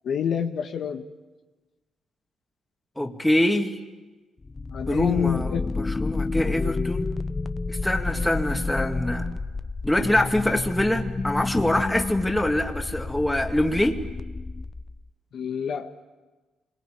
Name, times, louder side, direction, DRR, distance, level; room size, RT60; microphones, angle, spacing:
voice 1, 0.0-1.0 4.7-5.6 15.3-16.0, left 7 dB, 65° left, 5 dB, 1.5 m, -27 dB
voice 2, 3.0-3.8 4.9-7.1 7.7-9.3 9.8-14.0, left 1 dB, 10° left, 3 dB, 2.4 m, -24 dB
sound 1, 4.4-15.1, left 3 dB, 25° left, 0.8 m, -30 dB
26.5 x 22.5 x 8.9 m, 1.2 s
cardioid pair, 90°, 0 cm